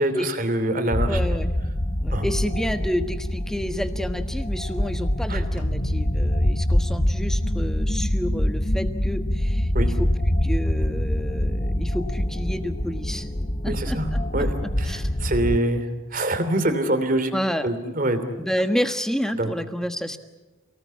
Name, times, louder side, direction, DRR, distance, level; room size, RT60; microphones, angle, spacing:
voice 1, 0.0-1.2 2.1-2.3 5.3-5.4 9.7-9.9 13.7-14.5 14.8-17.3 17.6-18.2 19.4-19.5, right 1 dB, 40° right, 9 dB, 2.9 m, -25 dB
sound 1, 0.9-15.6, left 1 dB, 30° left, 1.2 m, -25 dB
voice 2, 1.0-1.5 2.0-13.3 13.6-15.1 17.3-17.7 18.3-20.2, equal, ahead, 8 dB, 1.3 m, -30 dB
sound 2, 5.6-10.2, equal, 65° left, 2.0 m, -41 dB
29.5 x 18.5 x 8.6 m, 1.2 s
head